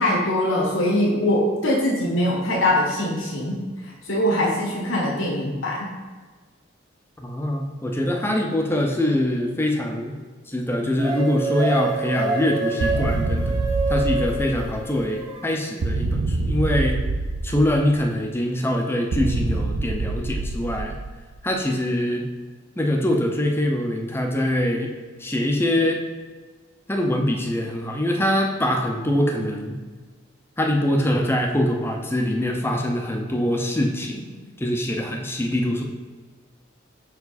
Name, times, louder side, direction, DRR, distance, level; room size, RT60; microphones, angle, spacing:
voice 1, 0.0-3.6 4.1-5.9, left 1 dB, 85° left, -3 dB, 1.5 m, -22 dB
voice 2, 7.2-10.2 10.5-13.6 13.9-17.0 17.4-21.0 21.4-22.3 22.8-24.9 25.2-26.0 26.9-29.8 30.6-34.3 34.6-35.8, left 1 dB, 10° left, 2 dB, 0.7 m, -23 dB
sound 1, 11.0-15.5, right 3 dB, 25° right, 1.1 m, -27 dB
sound 2, 12.8-15.1 15.8-18.1 19.1-21.4, right 2 dB, 65° right, 0.4 m, -26 dB
5.8 x 4.7 x 4.1 m, 1.4 s
head